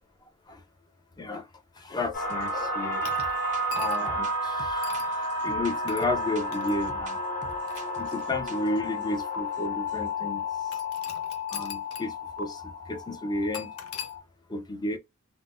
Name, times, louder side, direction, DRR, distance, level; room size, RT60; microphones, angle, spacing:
voice 1, 1.8-3.0 3.7-4.9 5.4-7.2 8.0-10.4 11.5-13.7 14.5-15.0, left 2 dB, 20° left, 0.6 m, -32 dB
sound 1, 2.1-14.2, left 1 dB, 40° left, 1.1 m, -32 dB
sound 2, 2.3-2.6 2.9-9.2 9.5-9.6 9.9-10.1, right 3 dB, 35° right, 0.6 m, -47 dB
sound 3, 3.0-4.2 4.8-5.1 5.9-6.1 6.5-6.7 7.4-8.6 9.3-9.4 10.7-12.1 12.4-12.5 13.5-14.1, left 6 dB, 75° left, 0.6 m, -41 dB
3.6 x 2.1 x 2.5 m
head